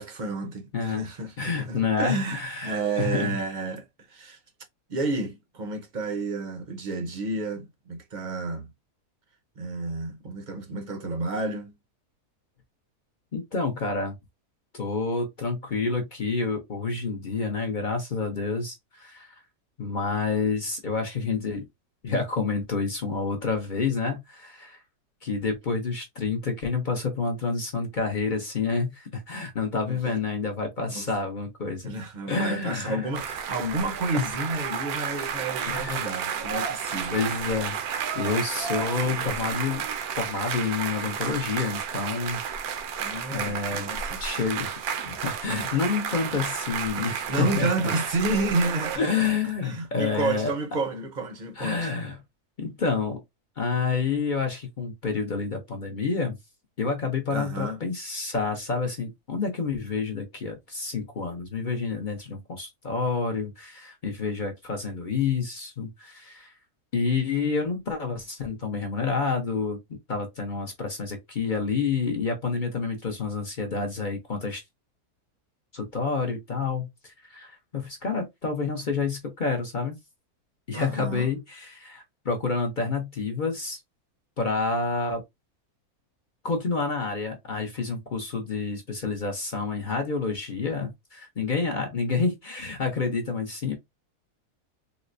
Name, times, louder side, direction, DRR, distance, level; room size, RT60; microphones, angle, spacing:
voice 1, 0.0-4.4 4.9-8.7 9.6-11.7 29.9-30.0 30.9-31.1 31.8-37.2 43.0-44.2 47.3-49.3 49.6-51.9 57.3-57.8 80.7-81.3, right 2 dB, 45° right, 0.6 m, -30 dB
voice 2, 1.4-3.4 13.3-14.1 14.7-19.4 19.8-21.6 22.0-24.8 25.2-31.9 32.3-33.1 34.1-34.2 35.7-36.1 37.1-39.8 40.2-42.4 43.3-43.9 44.2-44.8 45.0-47.7 49.0-50.5 51.6-52.2 52.6-53.2 53.6-56.4 56.8-66.5 66.9-69.8 70.1-74.6 75.7-80.0 80.7-83.8 84.4-85.2 86.4-93.7, left 4 dB, 45° left, 0.6 m, -28 dB
sound 1, 33.1-49.0, right 7 dB, 80° right, 1.1 m, -32 dB
4.0 x 2.1 x 2.5 m
omnidirectional pair, 1.6 m